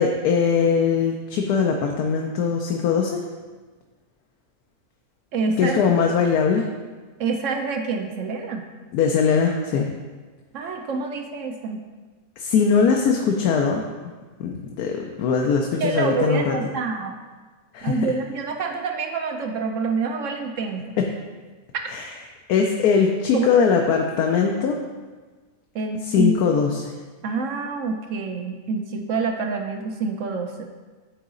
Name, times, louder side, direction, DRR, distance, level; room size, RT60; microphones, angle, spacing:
voice 1, 0.0-3.2 5.6-6.6 8.9-9.9 12.4-14.1 14.4-16.5 17.7-18.0 21.0-21.1 21.9-22.0 22.5-24.8 26.1-26.9, left 6 dB, 85° left, 1 dB, 1.1 m, -21 dB
voice 2, 5.3-5.8 7.2-8.7 10.5-11.8 15.8-17.2 17.8-21.0 23.3-23.5 25.7-26.3 27.2-30.7, right 4 dB, 65° right, 4 dB, 0.8 m, -27 dB
9.3 x 3.9 x 3.7 m, 1.3 s
omnidirectional pair, 1.6 m